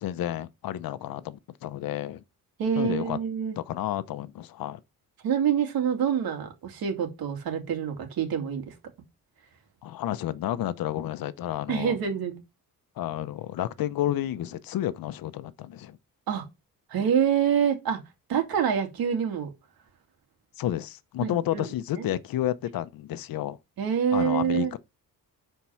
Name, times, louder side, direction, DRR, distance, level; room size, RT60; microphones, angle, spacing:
voice 1, 0.0-2.2 2.8-3.2 3.6-4.8 9.8-11.9 13.0-16.0 20.6-23.6 24.1-24.8, left 12 dB, 70° left, 0.9 m, -31 dB
voice 2, 2.6-3.5 5.2-8.7 11.7-12.4 16.3-16.4 16.9-18.0 18.3-19.5 21.2-21.6 22.0-22.1 23.8-24.7, right 8 dB, 80° right, 2.8 m, -26 dB
10.5 x 4.6 x 5.8 m
cardioid pair, 120°, 36 cm